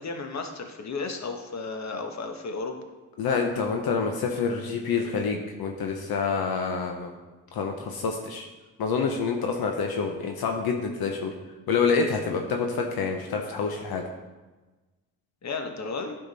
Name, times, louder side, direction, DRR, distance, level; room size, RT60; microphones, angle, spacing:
voice 1, 0.0-2.8 15.4-16.2, left 4 dB, 45° left, 5 dB, 1.2 m, -33 dB
voice 2, 3.2-7.1 7.5-8.4 8.8-11.3 11.7-14.0, left 5 dB, 75° left, 3 dB, 0.9 m, -27 dB
10.0 x 5.9 x 4.1 m, 1.2 s
cardioid pair, 70°, 37 cm